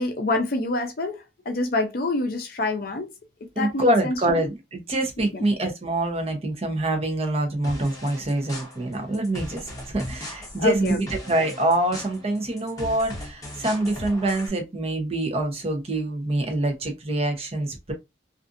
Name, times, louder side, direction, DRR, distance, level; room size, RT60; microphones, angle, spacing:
voice 1, 0.0-3.1 3.6-4.5 5.2-5.4 10.6-11.0, left 2 dB, 50° left, 0.5 m, -27 dB
voice 2, 3.6-17.9, right 1 dB, 30° right, 0.7 m, -25 dB
sound 1, 7.6-14.5, left 1 dB, 20° left, 0.8 m, -38 dB
2.5 x 2.4 x 2.5 m
head